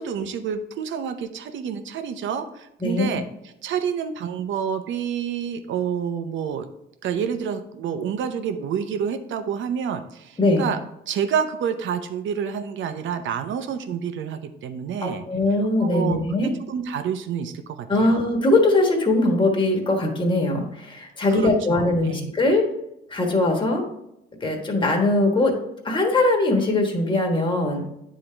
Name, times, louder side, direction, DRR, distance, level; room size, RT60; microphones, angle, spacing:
voice 1, 0.0-3.2 3.6-6.7 7.0-10.8 11.1-15.2 15.8-18.2 21.3-22.3, right 7 dB, 75° right, 9 dB, 0.7 m, -28 dB
voice 2, 15.0-16.5 17.9-22.7 23.1-23.9 24.4-25.6 25.8-27.8, left 2 dB, 25° left, 2 dB, 1.3 m, -21 dB
9.0 x 3.7 x 3.3 m, 0.84 s
cardioid pair, 90°, 20 cm